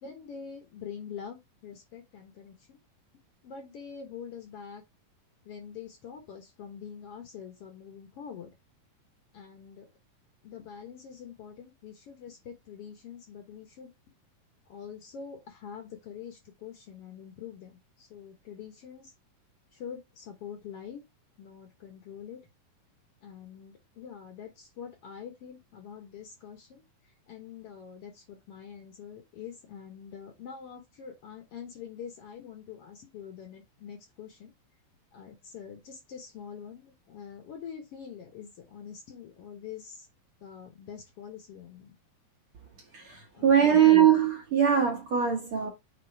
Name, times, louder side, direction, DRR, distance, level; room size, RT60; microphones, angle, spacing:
voice 1, 0.0-2.8 3.4-4.8 5.4-8.5 9.3-9.9 10.4-13.9 14.7-19.1 19.7-21.0 21.4-22.5 23.2-34.5 35.1-40.1 40.4-42.0 43.3-43.8, left 7 dB, 60° left, 1.6 m, -45 dB
voice 2, 42.9-45.7, right 9 dB, 65° right, 1.3 m, -22 dB
7.5 x 3.6 x 4.7 m
omnidirectional pair, 4.0 m